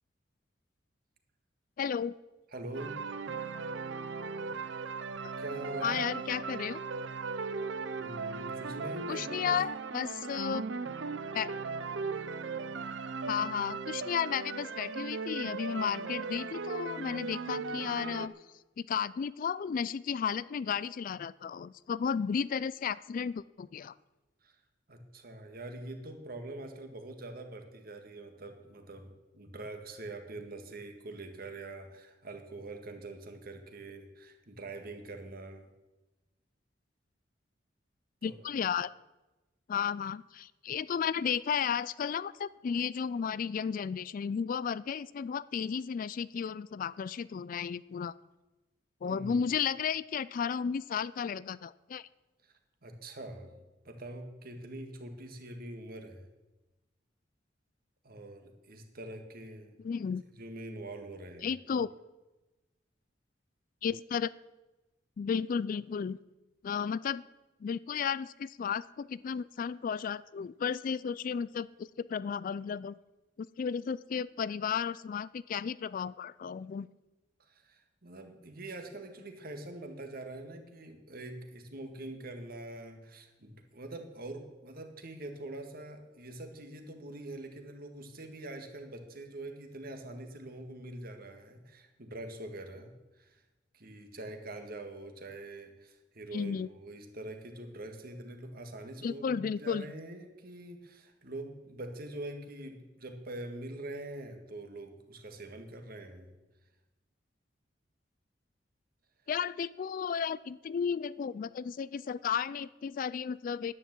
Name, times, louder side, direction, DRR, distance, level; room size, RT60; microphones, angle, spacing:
voice 1, 1.8-2.1 5.8-6.8 9.1-10.6 11.3-11.5 13.3-18.3 18.8-23.9 38.2-38.9 39.7-48.1 49.0-52.1 59.8-60.2 61.4-61.9 63.8-64.3 65.2-66.2 66.6-67.2 67.6-72.9 73.4-76.9 96.3-96.7 99.0-99.9 109.3-113.7, left 7 dB, 45° left, 19 dB, 0.3 m, -33 dB
voice 2, 2.5-3.0 5.4-6.0 7.4-7.6 8.0-9.6 24.4-24.6 24.9-35.7 38.2-38.4 49.1-49.4 52.4-52.5 52.8-53.6 53.8-56.3 58.0-59.8 60.4-61.8 77.4-93.4 93.7-106.3, right 2 dB, 55° right, 6 dB, 1.7 m, -44 dB
sound 1, 2.7-18.3, right 4 dB, 70° right, 0.7 m, -38 dB
10.5 x 9.6 x 7.5 m, 1.1 s
head